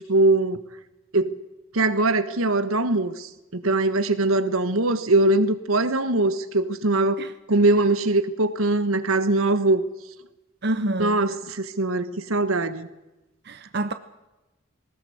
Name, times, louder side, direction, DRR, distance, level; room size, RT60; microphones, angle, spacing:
voice 1, 0.1-0.6 1.1-1.3 1.7-9.8 11.0-12.9, right 2 dB, 85° right, 1.5 m, -22 dB
voice 2, 10.6-11.2 13.4-13.9, right 1 dB, 50° right, 0.9 m, -27 dB
19.5 x 19.0 x 7.9 m
head